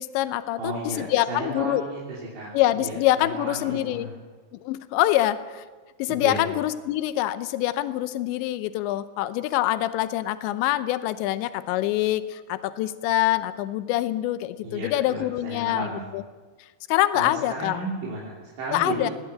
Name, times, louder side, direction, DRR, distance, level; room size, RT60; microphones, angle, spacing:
voice 1, 0.0-1.8 2.5-4.1 4.6-5.6 6.0-15.9 16.1-16.2 16.9-17.8 18.7-19.1, left 14 dB, 85° left, 13 dB, 3.1 m, -25 dB
voice 2, 0.6-4.1 6.1-6.4 14.6-16.0 17.1-19.1, right 2 dB, 75° right, -5 dB, 5.5 m, -34 dB
20.5 x 16.0 x 8.2 m, 1.4 s
omnidirectional pair, 5.1 m